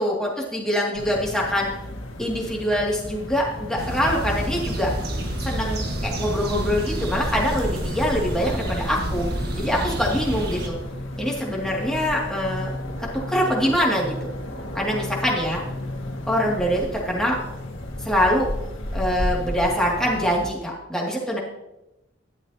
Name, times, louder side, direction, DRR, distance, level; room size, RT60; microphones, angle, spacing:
voice 1, 0.0-1.7 2.2-4.9 5.4-9.3 9.6-10.7 11.2-12.7 13.3-14.3 14.7-15.6 16.3-17.4 18.0-18.5 18.9-21.4, equal, 5° left, -4 dB, 2.5 m, -24 dB
sound 1, 0.9-20.5, left 1 dB, 90° left, 2.0 m, -34 dB
sound 2, 3.8-10.7, right 1 dB, 55° right, 1.7 m, -29 dB
13.5 x 11.5 x 2.9 m, 0.92 s
head